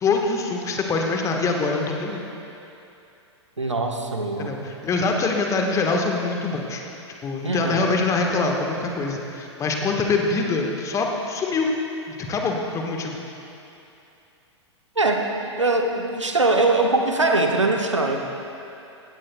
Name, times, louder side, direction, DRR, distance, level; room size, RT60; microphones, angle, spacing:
voice 1, 0.0-2.2 4.4-6.8 7.2-11.7 12.1-13.2, left 3 dB, 20° left, 1 dB, 1.3 m, -24 dB
voice 2, 3.6-4.6 7.4-7.9 15.0-15.3 15.6-18.2, right 2 dB, 85° right, 2 dB, 1.1 m, -22 dB
17.5 x 15.5 x 2.2 m, 2.7 s
figure-of-eight pair, 100°, 15 cm